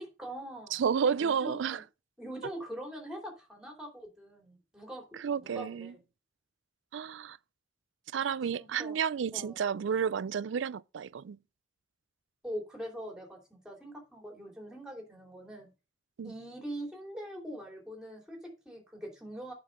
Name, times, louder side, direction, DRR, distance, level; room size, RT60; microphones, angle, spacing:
voice 1, 0.0-1.8 2.2-5.0 5.4-6.0 8.5-9.0 9.3-9.6 12.4-15.7 16.2-19.5, equal, 5° right, 3.0 m, -43 dB
voice 2, 0.7-1.8 5.2-5.9 6.9-7.4 8.1-11.4 16.2-16.3, right 7 dB, 65° right, 0.4 m, -31 dB
8.8 x 5.4 x 5.2 m
head